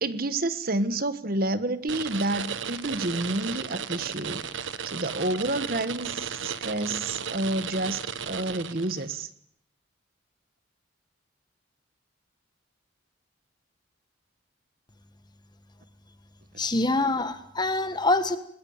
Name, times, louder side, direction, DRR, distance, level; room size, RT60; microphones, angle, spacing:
voice 1, 0.0-4.4 4.8-8.0 8.3-9.3, right 2 dB, 50° right, 13 dB, 1.3 m, -29 dB
sound 1, 1.9-9.1, right 7 dB, 80° right, 1.3 m, -35 dB
voice 2, 16.6-18.4, left 2 dB, 20° left, 11 dB, 1.4 m, -25 dB
20.5 x 20.5 x 8.8 m, 0.68 s
head